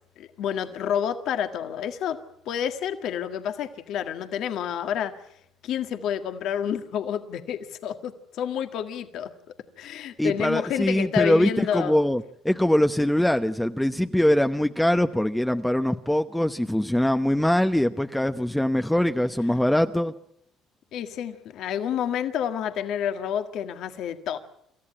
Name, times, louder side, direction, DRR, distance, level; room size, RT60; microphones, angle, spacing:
voice 1, 0.2-2.2 2.5-5.1 5.6-9.3 9.8-12.0 20.9-24.4, left 9 dB, 65° left, 1.7 m, -29 dB
voice 2, 10.2-20.1, left 1 dB, 5° left, 0.9 m, -23 dB
27.5 x 14.0 x 8.8 m
hypercardioid pair, 65°, 0 cm